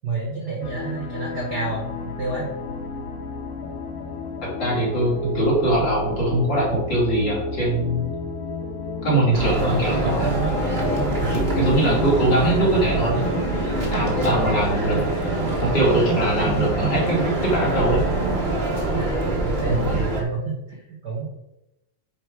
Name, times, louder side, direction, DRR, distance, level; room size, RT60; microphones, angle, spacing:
voice 1, 0.0-1.9 2.2-2.5 11.5-11.8 12.6-12.8 14.3-14.6 19.0-21.3, right 3 dB, 55° right, -1 dB, 1.1 m, -30 dB
sound 1, 0.6-16.4, left 3 dB, 80° left, 2.8 m, -32 dB
voice 2, 4.4-8.1 9.0-10.5 11.2-13.3 13.9-15.3 15.6-18.0 19.7-19.9, right 1 dB, 35° left, -5 dB, 2.6 m, -22 dB
sound 2, 9.3-20.2, right 2 dB, 85° right, 0.5 m, -24 dB
8.8 x 4.5 x 4.8 m, 0.89 s
omnidirectional pair, 3.9 m